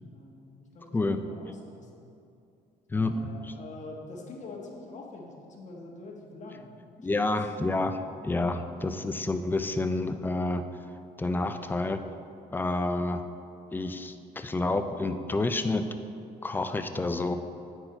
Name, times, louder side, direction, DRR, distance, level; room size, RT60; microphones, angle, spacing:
voice 1, 0.1-2.1 2.9-6.8 7.1-7.4, left 3 dB, 45° left, -1 dB, 1.3 m, -45 dB
voice 2, 2.9-3.5 7.0-10.6 11.2-12.0 12.5-13.2 13.7-15.9 16.4-17.3, left 2 dB, 10° left, 8 dB, 0.4 m, -29 dB
9.4 x 4.5 x 4.4 m, 2.5 s
cardioid pair, 110°, 17 cm